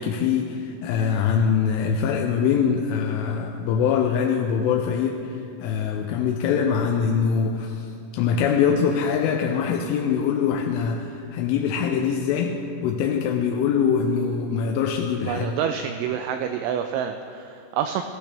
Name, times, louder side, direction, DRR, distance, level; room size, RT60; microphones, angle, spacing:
voice 1, 0.0-7.9 8.1-12.6 12.8-15.5, left 7 dB, 85° left, 2 dB, 3.0 m, -23 dB
voice 2, 15.3-18.0, right 8 dB, 90° right, 7 dB, 2.6 m, -27 dB
16.5 x 15.0 x 3.4 m, 2.6 s
omnidirectional pair, 5.8 m